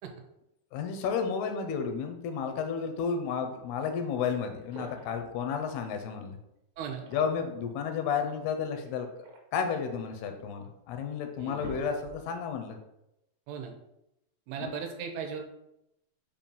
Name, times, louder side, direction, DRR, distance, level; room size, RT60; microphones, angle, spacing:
voice 1, 0.7-6.4 7.1-9.1 9.5-12.8 14.6-14.7, left 6 dB, 80° left, 6 dB, 2.5 m, -32 dB
sound 1, 4.6-5.3 6.7-7.6 8.9-10.2 10.8-10.9 11.3-12.4, right 2 dB, 60° right, 2.2 m, -47 dB
voice 2, 14.5-15.4, right 6 dB, 80° right, 4 dB, 2.5 m, -37 dB
7.0 x 2.7 x 5.3 m, 0.85 s
omnidirectional pair, 4.7 m